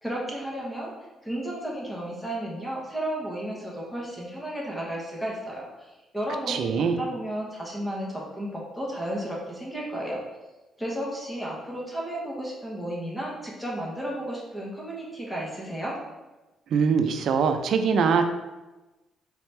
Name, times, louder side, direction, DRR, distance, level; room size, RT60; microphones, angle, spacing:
voice 1, 0.0-0.9 1.2-10.2 10.8-16.0, right 1 dB, 5° left, -3 dB, 1.1 m, -33 dB
voice 2, 6.5-7.0 16.7-18.2, right 6 dB, 70° right, 7 dB, 0.4 m, -22 dB
4.0 x 3.0 x 3.2 m, 1.1 s
cardioid pair, 90°, 0 cm